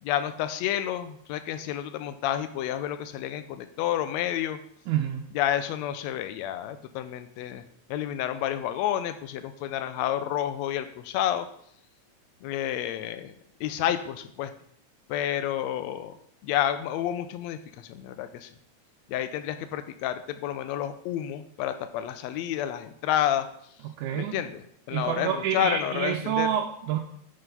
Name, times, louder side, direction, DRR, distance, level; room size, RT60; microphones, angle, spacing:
voice 1, 0.0-4.6 5.3-7.6 7.9-11.5 12.4-14.5 15.1-16.1 16.4-18.5 19.1-23.5 24.1-26.5, left 11 dB, 80° left, 10 dB, 1.8 m, -30 dB
voice 2, 4.9-5.3 23.8-24.4 24.9-27.0, right 10 dB, 90° right, 2 dB, 2.1 m, -28 dB
10.0 x 4.7 x 5.4 m, 0.67 s
omnidirectional pair, 3.4 m